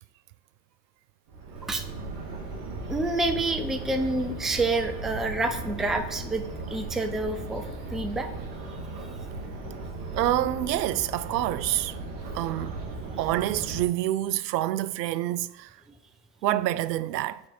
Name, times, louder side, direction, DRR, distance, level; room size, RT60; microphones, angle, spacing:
sound 1, 1.3-13.8, right 3 dB, 50° right, 1.9 m, -37 dB
voice 1, 2.9-7.6 7.9-8.3, right 2 dB, ahead, 0.3 m, -28 dB
voice 2, 10.1-12.0 12.3-12.8 13.2-15.8 16.4-17.4, right 14 dB, 80° right, 0.6 m, -27 dB
8.8 x 4.4 x 4.3 m
hypercardioid pair, 85°, 49 cm